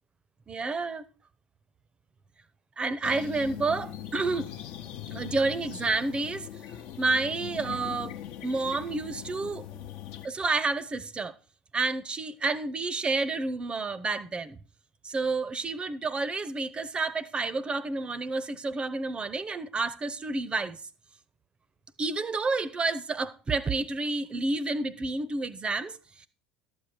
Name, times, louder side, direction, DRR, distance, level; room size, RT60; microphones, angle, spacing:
voice 1, 0.5-1.0 2.8-4.5 5.1-6.5 7.0-8.1 8.4-9.8 10.2-11.3 11.7-14.6 15.0-20.8 22.0-26.3, right 3 dB, 25° right, 0.7 m, -30 dB
sound 1, 3.0-10.3, left 11 dB, 55° left, 0.9 m, -41 dB
12.0 x 7.3 x 4.9 m
figure-of-eight pair, 70°, 4 cm